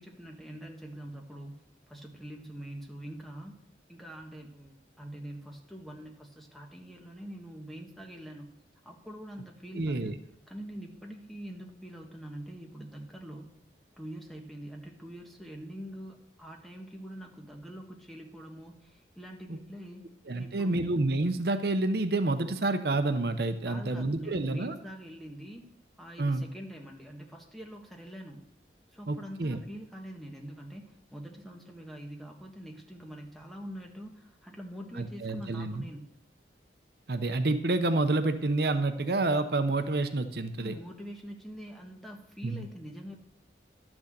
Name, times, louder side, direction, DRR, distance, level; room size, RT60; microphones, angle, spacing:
voice 1, 0.0-3.6 3.9-13.5 14.0-20.0 20.4-20.8 23.6-28.4 28.9-36.1 40.6-43.2, right 1 dB, ahead, 1 dB, 1.4 m, -44 dB
voice 2, 9.7-10.1 19.5-19.6 20.3-24.7 26.2-26.4 29.1-29.6 35.0-35.8 37.1-40.7 42.4-42.6, right 2 dB, 60° right, 9 dB, 0.7 m, -28 dB
12.0 x 6.2 x 7.4 m, 0.77 s
head